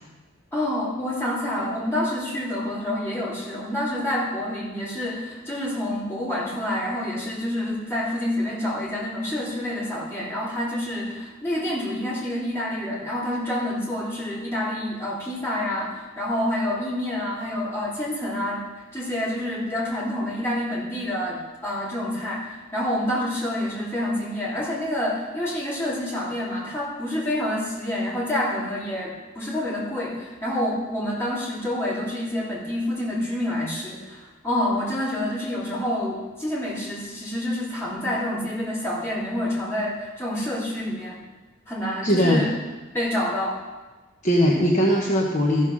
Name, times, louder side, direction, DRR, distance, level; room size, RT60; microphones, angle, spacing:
voice 1, 0.5-41.2 41.7-42.5 42.9-43.6, left 1 dB, 10° left, -8 dB, 3.3 m, -28 dB
voice 2, 42.0-42.5 44.2-45.7, equal, 40° left, -2 dB, 1.1 m, -20 dB
14.0 x 5.6 x 6.3 m, 1.2 s
head